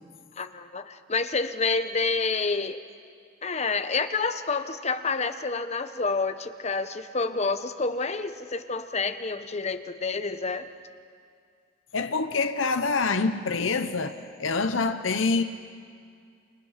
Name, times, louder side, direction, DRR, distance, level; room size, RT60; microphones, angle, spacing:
voice 1, 0.4-2.8 3.4-10.7, left 4 dB, 35° left, 1.0 m, -28 dB
voice 2, 11.9-15.4, left 4 dB, 80° left, 1.0 m, -26 dB
28.5 x 26.5 x 5.9 m
head